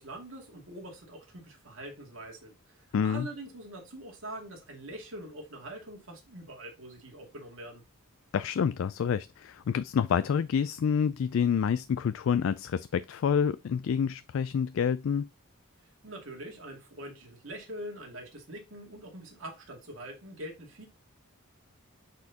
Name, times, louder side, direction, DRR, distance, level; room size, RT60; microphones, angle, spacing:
voice 1, 0.0-7.8 16.0-20.9, right 1 dB, 65° right, 2.4 m, -44 dB
voice 2, 2.9-3.3 8.3-15.3, left 7 dB, 65° left, 0.3 m, -28 dB
8.2 x 4.3 x 2.8 m
head